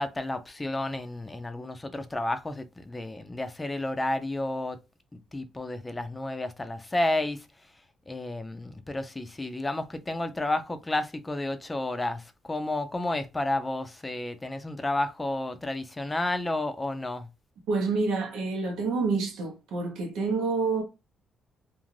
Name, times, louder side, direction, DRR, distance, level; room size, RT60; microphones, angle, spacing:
voice 1, 0.0-4.8 5.3-7.5 8.1-17.3, left 2 dB, 15° left, 0.4 m, -31 dB
voice 2, 17.7-20.8, right 4 dB, 85° right, 1.0 m, -28 dB
2.5 x 2.4 x 3.0 m
cardioid pair, 90°, 0 cm